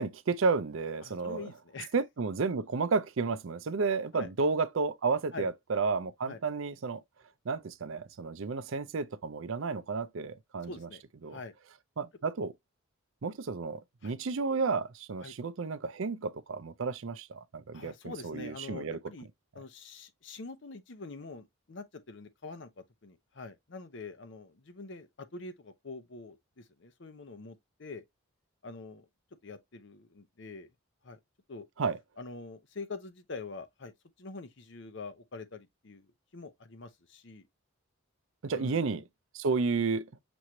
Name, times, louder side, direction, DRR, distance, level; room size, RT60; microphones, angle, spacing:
voice 1, 0.0-1.5 1.9-7.0 7.5-10.9 11.2-11.4 12.0-12.5 13.2-19.0 31.8-32.0 38.4-39.0 39.3-40.1, right 4 dB, 70° right, 0.5 m, -32 dB
voice 2, 1.0-1.9 4.1-4.3 5.3-5.5 6.2-6.4 10.7-11.0 11.3-11.5 14.0-14.1 15.2-15.3 17.7-19.3 19.5-28.0 28.6-29.1 29.4-30.7 31.0-31.2 31.5-31.7 32.2-33.9 34.2-37.5 38.5-38.8, left 3 dB, 55° left, 0.7 m, -45 dB
6.1 x 3.1 x 2.7 m
head